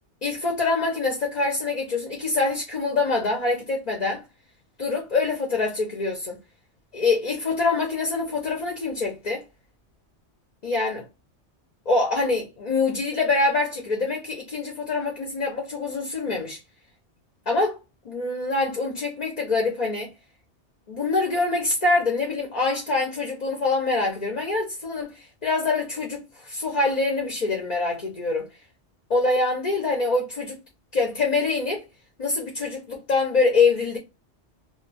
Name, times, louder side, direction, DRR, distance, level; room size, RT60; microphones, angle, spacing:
voice 1, 0.2-4.2 4.8-6.4 6.9-9.4 10.6-11.1 11.9-16.6 17.5-17.8 18.0-20.1 20.9-28.5 29.1-30.6 30.9-31.8 32.2-34.0, left 3 dB, 40° left, 0.7 m, -25 dB
2.3 x 2.2 x 3.2 m
omnidirectional pair, 1.2 m